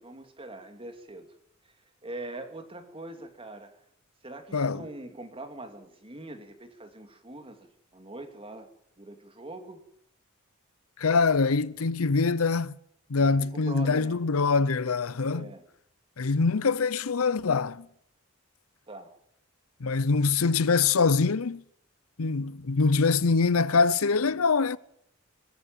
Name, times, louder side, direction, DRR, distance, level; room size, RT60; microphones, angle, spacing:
voice 1, 0.0-1.3 2.0-3.8 4.2-8.7 9.0-9.8 13.3-14.2 15.3-15.6 18.9-19.1, right 2 dB, 25° right, 2.6 m, -43 dB
voice 2, 4.5-4.8 11.0-12.7 13.1-15.5 16.2-17.9 19.8-21.6 22.2-24.8, left 4 dB, 85° left, 0.7 m, -24 dB
21.0 x 13.5 x 9.0 m
head